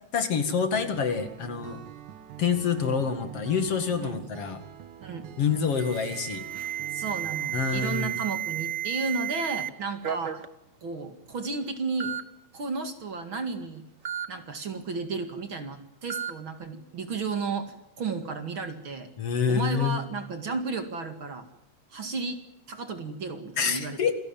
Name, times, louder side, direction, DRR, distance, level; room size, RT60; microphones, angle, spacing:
voice 1, 0.1-1.8 2.4-4.6 5.4-6.4 7.5-8.2 19.2-20.0 23.6-24.1, left 6 dB, 55° left, 8 dB, 2.9 m, -27 dB
Acoustic guitar, 0.7-7.9, right 11 dB, 90° right, 2.9 m, -45 dB
Alarm, 5.7-9.7 10.0-10.5 11.3-11.4 12.0-12.2 14.1-14.3 16.1-16.3, right 11 dB, 70° right, 0.7 m, -33 dB
voice 2, 6.9-10.4 10.8-12.2 12.5-13.8 14.3-19.1 19.5-21.5 21.9-22.4 22.7-24.0, right 4 dB, 45° right, 7 dB, 2.6 m, -33 dB
27.5 x 18.0 x 9.0 m, 0.83 s
omnidirectional pair, 3.3 m